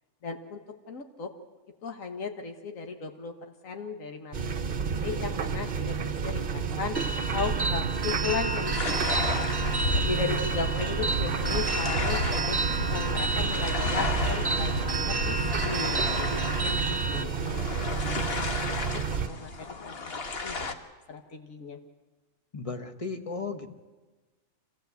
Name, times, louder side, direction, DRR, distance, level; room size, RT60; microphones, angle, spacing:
voice 1, 0.2-0.6 0.9-1.3 1.8-3.3 3.6-9.0 9.3-9.4 9.9-12.6 12.9-15.0 15.3-16.8 17.1-19.5 19.8-20.1 20.4-20.8 21.1-21.8, left 5 dB, 80° left, 5 dB, 1.8 m, -36 dB
sound 1, 4.3-19.3, right 6 dB, 45° right, 0.9 m, -31 dB
sound 2, 6.9-17.2, right 3 dB, 25° right, 0.6 m, -32 dB
sound 3, 8.7-20.7, left 2 dB, 50° left, 1.5 m, -33 dB
voice 2, 22.5-23.7, left 4 dB, 25° left, 5 dB, 1.4 m, -35 dB
25.5 x 17.0 x 8.2 m, 1.3 s
omnidirectional pair, 1.4 m